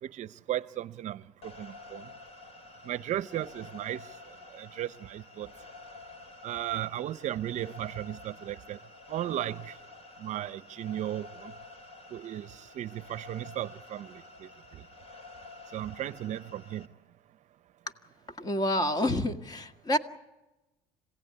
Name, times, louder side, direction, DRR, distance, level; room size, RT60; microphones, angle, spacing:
voice 1, 0.0-2.1 2.8-4.1 4.5-5.5 6.4-8.8 9.1-9.8 10.2-11.5 12.1-14.8 15.7-16.9, right 12 dB, 55° right, 0.7 m, -36 dB
sound 1, 1.4-16.9, left 3 dB, 45° left, 3.4 m, -50 dB
voice 2, 18.4-20.0, left 1 dB, 25° left, 1.9 m, -28 dB
26.5 x 17.0 x 9.7 m
supercardioid pair, 95°, 15 cm